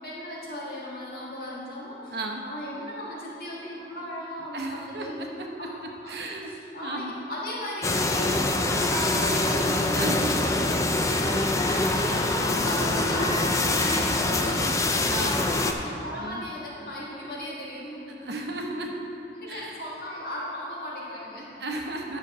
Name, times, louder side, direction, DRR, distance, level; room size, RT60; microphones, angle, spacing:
voice 1, 0.0-5.2 5.6-5.8 6.0-6.1 6.5-18.4 18.7-19.0 19.4-21.5, equal, 55° left, -6 dB, 1.8 m, -36 dB
voice 2, 2.1-2.4 4.5-5.5 6.1-6.5 6.8-7.1 9.9-10.6 11.6-12.0 15.1-15.5 16.2-16.4 18.2-18.9 19.5-19.8 21.6-22.2, right 2 dB, 65° right, 1 dB, 0.9 m, -34 dB
sound 1, 7.8-15.7, left 2 dB, 15° left, 0.4 m, -24 dB
10.5 x 5.9 x 4.9 m, 2.8 s
head